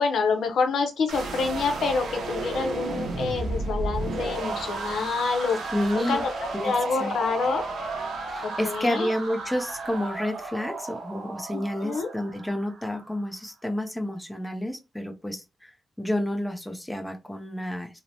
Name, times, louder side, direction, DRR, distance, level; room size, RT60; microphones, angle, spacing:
voice 1, 0.0-5.6 5.9-6.3 6.6-7.6 8.4-9.1 11.5-12.1, left 4 dB, 85° left, 5 dB, 0.6 m, -27 dB
sound 1, 1.1-13.1, right 3 dB, 90° right, 0.7 m, -33 dB
voice 2, 5.7-6.3 6.5-6.7 7.0-7.1 8.3-15.7 16.0-18.0, left 1 dB, 10° left, 4 dB, 0.5 m, -30 dB
2.9 x 2.0 x 2.6 m, 0.26 s
cardioid pair, 90°, 0 cm